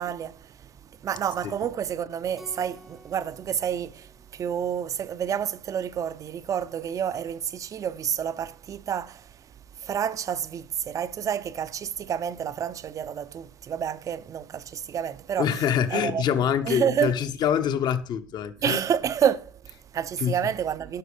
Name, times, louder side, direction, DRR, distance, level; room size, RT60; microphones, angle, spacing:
voice 1, 0.0-9.5 9.8-15.5 15.9-16.2 16.7-17.1 18.6-21.0, right 8 dB, 35° right, 0.6 m, -29 dB
Keyboard (musical), 2.4-5.0, right 1 dB, ahead, 0.8 m, -51 dB
voice 2, 15.4-18.8 20.2-20.5, left 8 dB, 45° left, 0.9 m, -25 dB
10.0 x 6.0 x 5.0 m
supercardioid pair, 95°, 10 cm